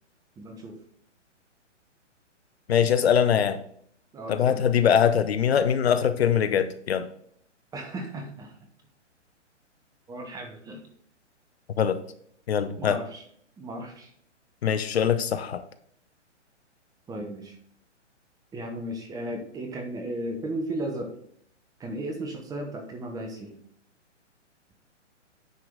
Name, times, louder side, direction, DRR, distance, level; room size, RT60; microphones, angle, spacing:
voice 1, 0.4-0.8 4.1-4.7 7.7-8.6 10.1-10.8 12.8-13.2 13.6-14.1 17.1-17.6 18.5-21.1 21.8-23.6, right 1 dB, 10° right, 3 dB, 1.0 m, -35 dB
voice 2, 2.7-3.6 4.3-7.0 11.8-12.0 12.5-13.0 14.6-15.6, left 8 dB, 55° left, 12 dB, 0.8 m, -22 dB
9.7 x 4.7 x 3.8 m, 0.64 s
figure-of-eight pair, 130°, 37 cm